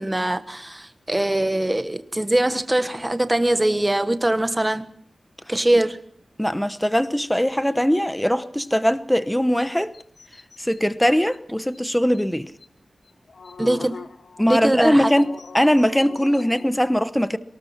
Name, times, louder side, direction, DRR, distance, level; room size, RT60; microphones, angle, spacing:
voice 1, 0.0-4.9 5.5-6.0 13.6-14.0 14.5-15.1, right 1 dB, 15° right, 1.3 m, -22 dB
voice 2, 6.4-9.9 10.6-12.5 14.4-17.4, equal, 5° left, 0.9 m, -21 dB
sound 1, 9.6-10.8 11.3-11.4 11.7-11.8 12.1-12.2 12.6-12.7 13.0-16.7, left 4 dB, 70° left, 1.0 m, -41 dB
23.5 x 19.0 x 5.8 m
wide cardioid pair, 80°, 0 cm